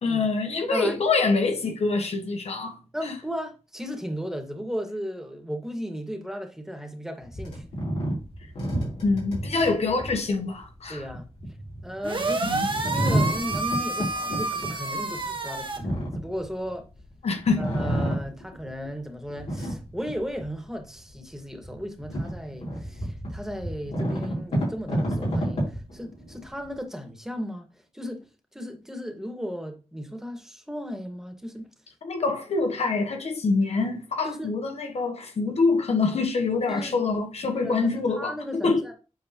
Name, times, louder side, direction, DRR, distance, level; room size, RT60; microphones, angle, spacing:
voice 1, 0.0-2.7 9.0-11.0 12.4-12.7 17.2-17.7 32.0-38.3 38.6-38.8, left 3 dB, 70° left, 1.2 m, -25 dB
voice 2, 2.9-7.6 10.9-11.3 11.8-12.6 12.8-16.9 17.6-27.7 27.9-31.7 34.2-34.5 36.7-36.9 37.5-38.9, equal, 5° right, 2.0 m, -35 dB
sound 1, 7.2-17.1 17.4-18.9 19.3-20.6 21.1-21.2 21.6-26.7, right 1 dB, 90° left, 3.8 m, -30 dB
sound 2, 12.0-15.8, right 3 dB, 50° right, 1.6 m, -29 dB
8.4 x 4.6 x 3.1 m
cardioid pair, 45°, 11 cm